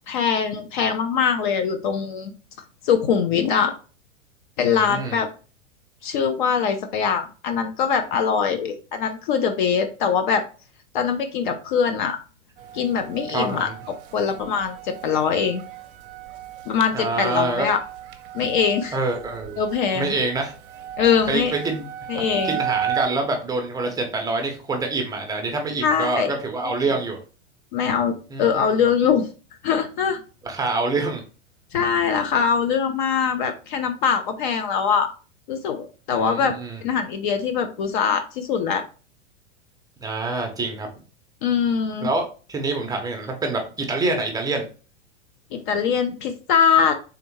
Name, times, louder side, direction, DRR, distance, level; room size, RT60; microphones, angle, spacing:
voice 1, 0.1-2.3 2.9-3.7 4.6-5.3 6.0-10.4 10.9-12.2 12.7-13.7 14.1-15.6 16.7-17.8 18.3-18.9 19.6-20.2 21.0-21.5 22.1-22.6 25.8-26.3 27.7-29.3 29.6-30.2 31.7-35.1 35.5-36.5 36.8-38.8 41.4-42.1 45.5-46.9, left 7 dB, 45° left, 8 dB, 0.6 m, -22 dB
voice 2, 4.8-5.2 13.3-13.8 16.9-17.7 18.9-19.6 19.9-20.5 21.3-21.9 22.4-27.2 28.3-28.6 30.4-31.2 36.1-36.8 40.0-40.9 42.0-42.2 42.5-44.7, right 3 dB, 10° right, 3 dB, 0.7 m, -26 dB
sound 1, 12.6-23.1, right 10 dB, 50° right, 0.6 m, -34 dB
3.6 x 3.4 x 3.0 m, 0.35 s
figure-of-eight pair, 95°, 36 cm